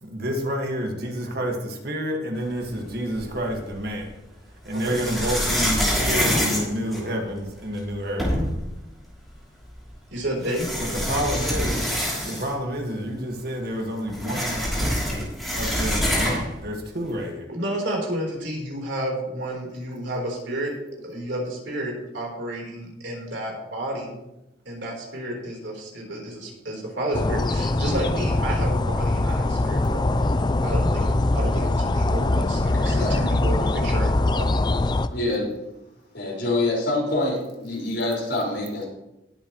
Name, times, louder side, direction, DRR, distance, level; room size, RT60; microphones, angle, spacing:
voice 1, 0.0-4.1 4.6-8.3 10.9-11.9 12.3-17.5, equal, 50° right, 2 dB, 1.8 m, -29 dB
sound 1, 3.2-3.9 4.7-7.5 7.9-8.0 8.2-8.7 9.7-9.8 10.4-12.7 13.0-13.1 13.4-16.6, equal, ahead, 3.1 m, -26 dB
voice 2, 4.7-5.2 10.1-10.7 17.5-20.7 21.0-24.2 24.7-30.0 30.6-34.7, right 1 dB, 70° right, -1 dB, 3.9 m, -31 dB
sound 2, 27.1-35.1, left 2 dB, 20° left, 0.4 m, -22 dB
voice 3, 32.7-33.2 35.1-35.5 36.1-38.8, left 2 dB, 65° left, -4 dB, 5.1 m, -26 dB
19.5 x 8.6 x 3.1 m, 0.93 s
head